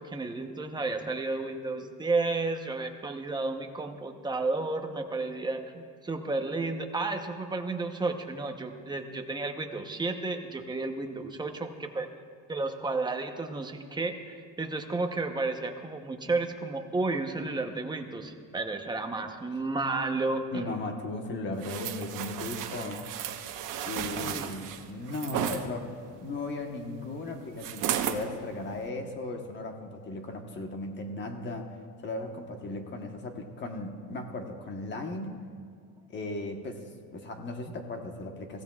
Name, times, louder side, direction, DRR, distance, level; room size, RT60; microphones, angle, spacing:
voice 1, 0.0-12.1 12.5-20.6 24.3-24.5, right 3 dB, 10° right, 5 dB, 0.8 m, -32 dB
voice 2, 20.5-23.1 23.8-25.9 26.2-31.7 32.0-35.4 36.1-36.8 37.1-38.6, left 2 dB, 30° left, 4 dB, 1.2 m, -36 dB
sound 1, 21.6-25.6 27.6-28.2 28.8-28.9, right 10 dB, 60° right, 1.1 m, -34 dB
23.0 x 16.0 x 2.4 m, 2.1 s
cardioid pair, 155°, 36 cm